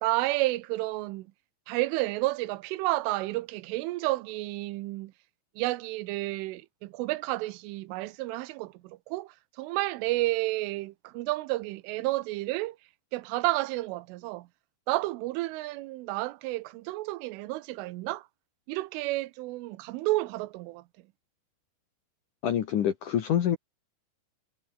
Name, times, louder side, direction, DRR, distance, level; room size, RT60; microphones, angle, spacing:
voice 1, 0.0-1.3 1.7-5.1 5.6-12.8 13.1-14.5 14.9-18.3 18.7-20.8, right 19 dB, 85° right, 3.4 m, -31 dB
voice 2, 22.4-23.6, left 10 dB, 60° left, 2.3 m, -26 dB
omnidirectional pair, 5.6 m